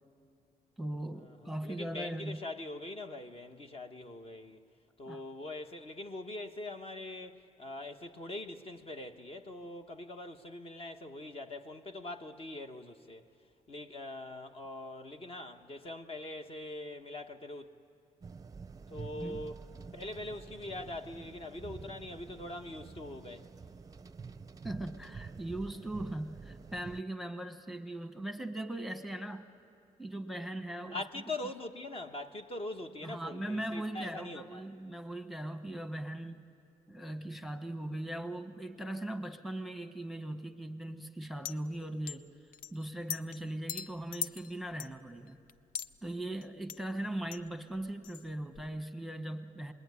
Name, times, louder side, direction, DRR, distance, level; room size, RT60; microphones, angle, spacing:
voice 1, 0.8-2.5 5.1-5.2 19.2-19.4 24.6-29.5 30.0-31.0 33.0-36.4 36.9-42.3 42.7-45.4 46.0-49.7, right 1 dB, ahead, 1.2 m, -39 dB
voice 2, 1.4-4.6 5.0-13.2 13.7-17.7 18.9-19.6 19.9-23.5 30.9-34.6, left 2 dB, 40° left, 1.3 m, -42 dB
sound 1, 18.2-27.0, right 5 dB, 25° right, 0.6 m, -48 dB
sound 2, 41.5-41.6 42.1-42.2 42.5-43.4 43.7-46.0 46.4-46.5 46.7-46.8 47.3-47.5 47.8-48.7, left 8 dB, 80° left, 0.6 m, -40 dB
27.0 x 21.0 x 9.6 m
cardioid pair, 95°, 14 cm